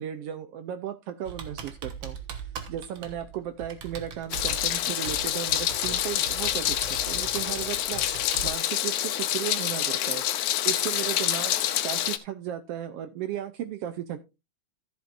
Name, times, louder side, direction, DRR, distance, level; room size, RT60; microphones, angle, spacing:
voice 1, 0.0-10.2 10.6-14.2, right 11 dB, 80° right, 10 dB, 1.4 m, -35 dB
Computer keyboard, 1.2-8.5, right 7 dB, 50° right, 1.6 m, -40 dB
Meow, 4.3-12.2, left 12 dB, 85° left, 2.2 m, -27 dB
14.0 x 7.9 x 2.5 m, 0.26 s
omnidirectional pair, 3.5 m